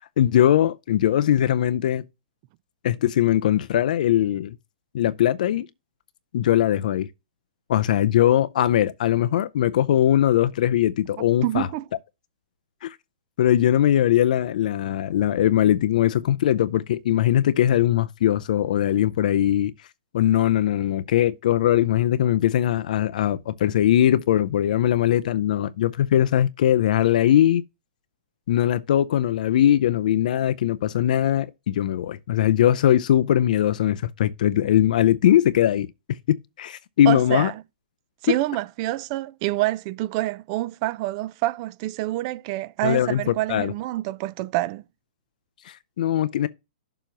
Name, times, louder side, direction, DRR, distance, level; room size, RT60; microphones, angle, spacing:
voice 1, 0.2-2.0 2.8-4.5 4.9-5.7 6.3-7.1 7.7-11.7 12.8-13.0 13.4-19.7 20.1-27.6 28.5-37.5 38.3-38.4 42.8-43.7 45.6-46.5, left 11 dB, 60° left, 0.5 m, -20 dB
voice 2, 11.2-11.9 37.1-37.5 38.2-44.8, right 17 dB, 35° right, 0.4 m, -27 dB
6.9 x 2.9 x 5.9 m
hypercardioid pair, 140°, 5 cm